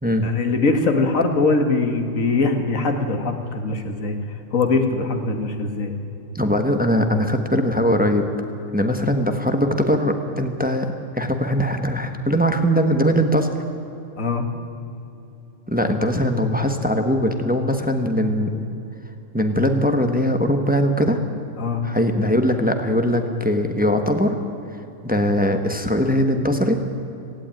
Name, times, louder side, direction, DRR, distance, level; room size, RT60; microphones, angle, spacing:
voice 1, 0.2-4.2 4.5-5.9 14.2-14.4 21.6-21.8, left 3 dB, 90° left, 6 dB, 2.1 m, -21 dB
voice 2, 6.3-8.3 8.7-13.5 15.7-18.7 19.3-21.2 21.8-24.4 25.0-26.8, equal, 5° right, 6 dB, 1.2 m, -20 dB
18.0 x 16.5 x 9.1 m, 2.9 s
omnidirectional pair, 1.3 m